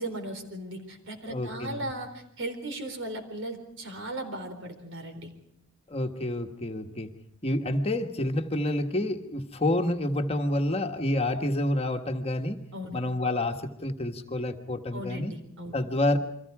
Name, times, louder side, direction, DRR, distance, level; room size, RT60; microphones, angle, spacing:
voice 1, 0.0-5.3 12.7-13.0 14.9-15.8, right 1 dB, 60° right, 7 dB, 4.2 m, -37 dB
voice 2, 1.3-1.9 5.9-7.1 7.4-12.6 12.9-15.3 15.7-16.2, left 1 dB, 30° left, 5 dB, 1.5 m, -28 dB
29.5 x 24.0 x 4.9 m, 0.74 s
head